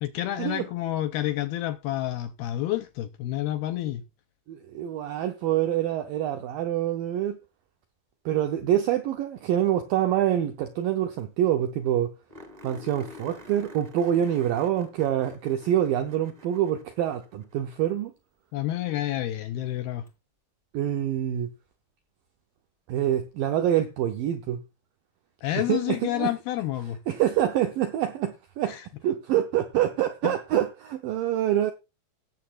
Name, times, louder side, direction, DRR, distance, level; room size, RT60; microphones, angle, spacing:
voice 1, 0.0-4.0 18.5-20.1 25.4-27.0 28.7-28.9 30.2-30.4, left 14 dB, 85° left, 2.3 m, -29 dB
voice 2, 4.5-7.4 8.3-12.1 12.6-18.1 20.7-21.5 22.9-24.6 25.6-26.3 27.1-28.8 29.0-31.7, right 11 dB, 80° right, 2.0 m, -26 dB
sound 1, 10.9-11.0 11.2-11.3 11.6-11.7 12.3-17.7 20.1-20.2 23.0-23.1, left 1 dB, 15° right, 1.2 m, -48 dB
18.0 x 7.5 x 2.4 m
omnidirectional pair, 5.1 m